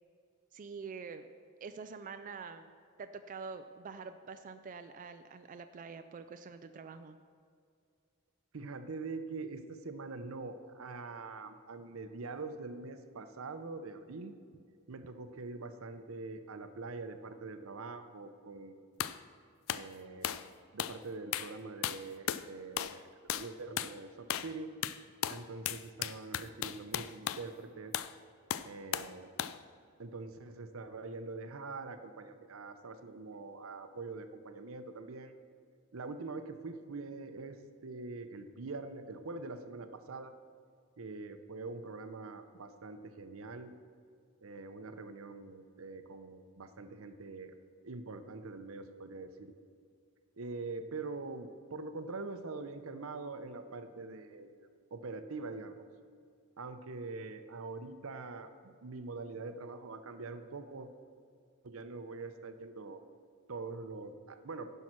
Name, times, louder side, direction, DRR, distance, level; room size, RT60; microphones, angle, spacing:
voice 1, 0.5-1.3 1.6-2.7 3.0-7.2, right 5 dB, 40° right, 9 dB, 0.3 m, -46 dB
voice 2, 8.5-14.3 14.9-18.8 19.7-20.4 20.7-23.0 23.3-24.7 25.3-27.9 28.6-29.3 30.0-35.3 35.9-40.3 41.0-43.7 44.4-47.5 47.8-49.5 50.4-54.6 54.9-55.8 56.6-60.9 61.6-63.0 63.5-64.7, right 3 dB, 80° right, 9 dB, 0.7 m, -44 dB
sound 1, 19.0-19.2 19.7-19.9 20.2-20.5 20.8-21.0 21.3-21.5 21.8-22.5 22.8-23.0 23.3-23.5 23.8-24.0 24.3-24.5 24.8-27.5 27.9-28.1 28.5-29.1 29.4-29.6, left 10 dB, 70° left, 0.4 m, -36 dB
10.5 x 5.6 x 6.0 m, 2.3 s
head